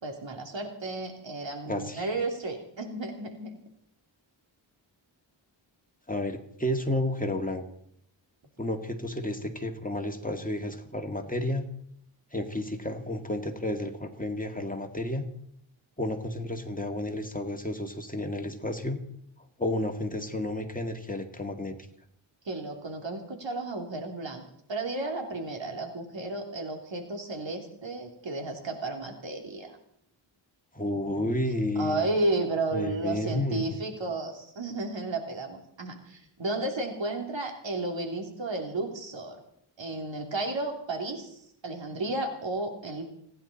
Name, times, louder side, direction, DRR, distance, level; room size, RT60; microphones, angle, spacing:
voice 1, 0.0-3.6 22.4-24.4 24.7-29.7 31.8-39.4 39.8-41.3 41.6-43.0, right 2 dB, 65° right, 3 dB, 3.3 m, -33 dB
voice 2, 1.7-2.1 6.1-7.6 8.6-11.6 12.3-15.3 16.0-19.0 19.6-21.8 30.7-32.1 32.7-33.8, left 1 dB, 15° left, 4 dB, 2.2 m, -31 dB
29.5 x 10.5 x 4.3 m, 0.71 s
cardioid pair, 55°, 48 cm